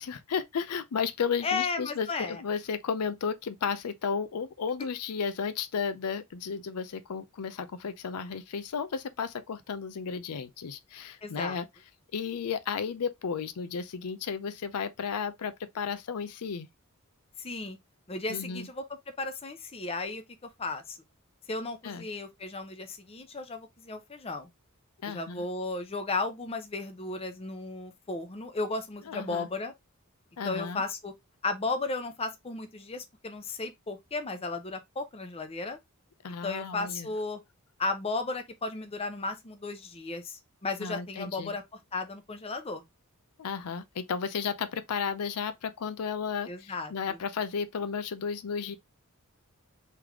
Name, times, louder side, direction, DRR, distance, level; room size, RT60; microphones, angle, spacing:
voice 1, 0.0-11.7 12.1-16.7 18.3-18.7 21.8-22.0 25.0-25.4 29.1-29.5 30.4-30.8 36.2-37.1 40.8-41.5 43.4-48.8, left 6 dB, 85° left, 0.5 m, -33 dB
voice 2, 1.4-2.4 11.2-11.6 17.4-17.8 18.1-18.8 19.2-20.2 20.6-21.0 21.5-24.5 25.1-29.7 30.4-31.1 31.4-35.8 36.4-37.4 37.8-41.6 41.9-42.8 46.5-47.2, left 3 dB, 25° left, 0.6 m, -34 dB
3.4 x 3.2 x 3.5 m
head